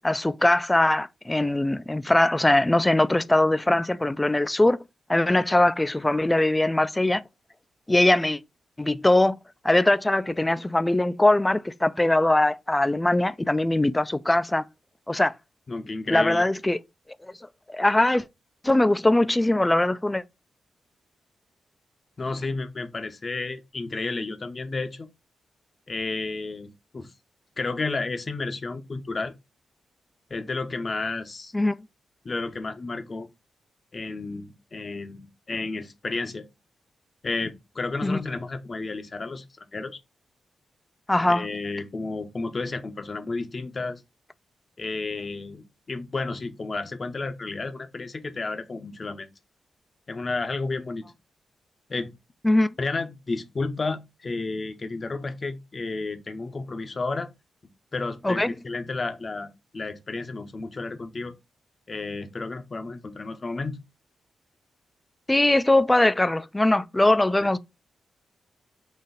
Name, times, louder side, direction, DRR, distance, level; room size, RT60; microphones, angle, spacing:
voice 1, 0.0-4.8 5.1-7.2 7.9-8.4 8.8-9.4 9.6-14.6 15.1-15.3 16.1-16.8 17.2-17.3 17.7-18.3 18.6-20.2 31.5-31.8 38.0-38.2 41.1-41.4 52.4-52.7 58.2-58.5 65.3-67.6, left 1 dB, 15° left, 0.3 m, -21 dB
voice 2, 15.7-16.4 22.2-25.1 25.9-27.1 27.6-29.3 30.3-31.5 32.2-33.3 33.9-36.4 37.2-39.4 39.7-40.0 41.3-44.0 44.8-49.3 50.1-51.1 51.9-52.1 52.8-57.3 57.9-61.3 61.9-63.8 67.4-67.5, left 3 dB, 45° left, 0.7 m, -32 dB
4.1 x 2.5 x 3.8 m
cardioid pair, 60°, 0 cm